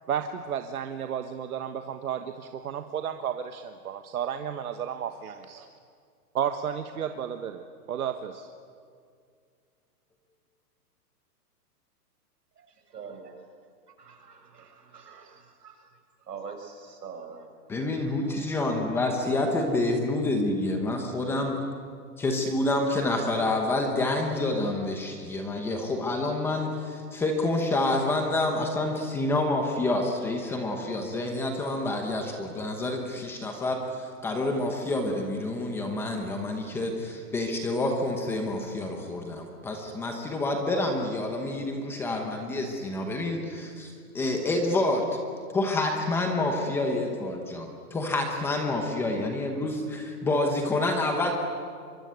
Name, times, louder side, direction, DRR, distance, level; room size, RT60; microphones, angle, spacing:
voice 1, 0.1-5.7 6.3-8.5, right 8 dB, 65° right, 7 dB, 1.5 m, -33 dB
voice 2, 12.6-13.5 14.0-15.9 16.2-17.5, right 5 dB, 90° right, 5 dB, 6.0 m, -44 dB
voice 3, 17.7-21.6 22.2-45.2 45.5-51.3, left 2 dB, 5° left, 3 dB, 0.9 m, -28 dB
24.0 x 24.0 x 9.5 m, 2.2 s
hypercardioid pair, 170°, 47 cm